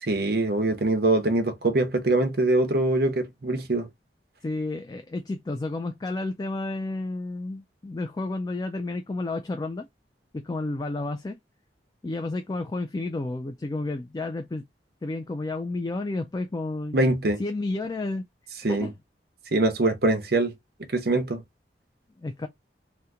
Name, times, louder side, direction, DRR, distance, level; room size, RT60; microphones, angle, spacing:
voice 1, 0.0-3.9 16.9-17.4 18.6-18.9 19.5-20.5 20.9-21.4, right 2 dB, 60° right, 0.8 m, -23 dB
voice 2, 4.4-9.9 10.3-11.4 12.0-14.6 15.0-17.0 17.4-18.3 18.7-18.9 22.2-22.5, left 2 dB, 20° left, 0.3 m, -31 dB
2.9 x 2.1 x 3.5 m
head